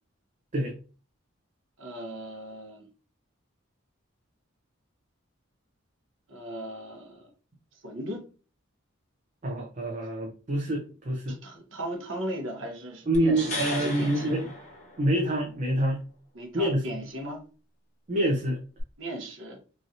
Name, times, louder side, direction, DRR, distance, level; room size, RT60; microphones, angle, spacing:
voice 1, 1.8-2.9 6.3-7.3 7.8-8.2 11.3-14.4 16.3-17.4 19.0-19.6, right 1 dB, 65° right, 2 dB, 0.9 m, -37 dB
voice 2, 9.4-11.4 13.1-14.5 15.0-16.0 16.5-16.8 18.1-18.6, right 1 dB, 35° right, -1 dB, 0.5 m, -26 dB
sound 1, 13.1-15.4 18.8-18.9, left 2 dB, 35° left, 0.9 m, -37 dB
3.0 x 2.6 x 2.6 m, 0.36 s
head